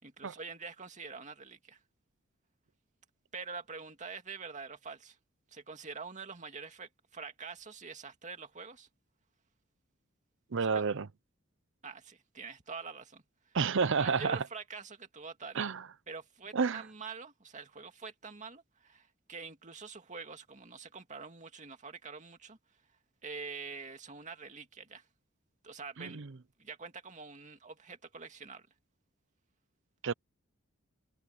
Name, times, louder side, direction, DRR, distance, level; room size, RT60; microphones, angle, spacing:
voice 1, 0.0-1.8 3.3-5.2 5.5-8.9 10.7-10.8 11.8-13.6 14.0-15.6 16.1-22.6 23.2-25.1 25.6-26.2 26.6-28.7, right 5 dB, 35° right, 2.3 m, -45 dB
voice 2, 10.5-11.1 13.5-14.4 15.5-15.8 16.5-16.8 26.0-26.3 30.0-30.1, right 5 dB, 65° right, 0.7 m, -30 dB
head